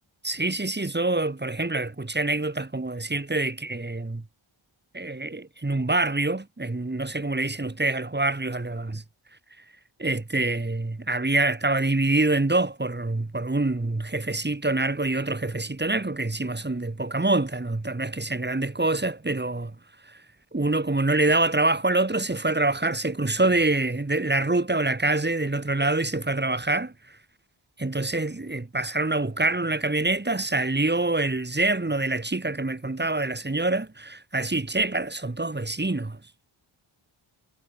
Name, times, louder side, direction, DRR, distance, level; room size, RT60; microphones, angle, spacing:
voice 1, 0.2-4.2 4.9-9.0 10.0-19.8 20.1-20.2 20.5-26.9 27.8-36.2, right 2 dB, 20° right, 3.5 m, -25 dB
wide cardioid pair, 125°, 49 cm